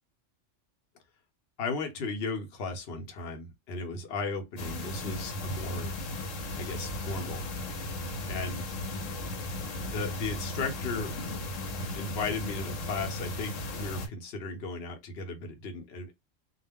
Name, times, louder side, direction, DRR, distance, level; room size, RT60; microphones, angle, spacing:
voice 1, 1.6-5.9 6.5-7.4 8.3-8.6 9.9-11.1 12.0-16.1, left 3 dB, 60° left, 0.9 m, -35 dB
sound 1, 4.6-14.1, left 2 dB, 85° left, 1.0 m, -36 dB
2.3 x 2.0 x 3.4 m
omnidirectional pair, 1.3 m